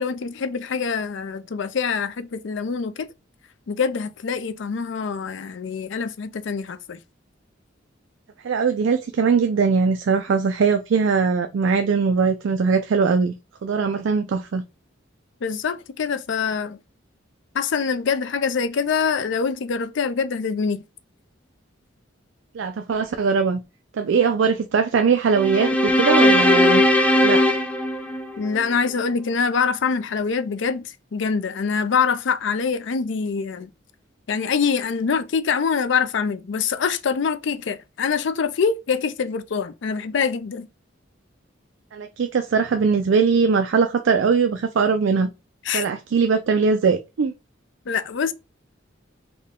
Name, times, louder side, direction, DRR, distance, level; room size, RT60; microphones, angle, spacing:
voice 1, 0.0-3.1 3.7-7.0 15.4-16.8 17.5-20.8 28.4-33.7 34.3-40.7 45.6-45.8 47.9-48.3, left 5 dB, 65° left, 0.4 m, -24 dB
voice 2, 8.4-13.3 13.6-14.6 22.5-23.6 23.9-26.8 27.2-27.4 41.9-45.3 45.7-47.3, right 5 dB, 70° right, 0.4 m, -20 dB
sound 1, 25.3-28.7, left 1 dB, 5° left, 0.4 m, -18 dB
3.7 x 2.2 x 3.6 m
head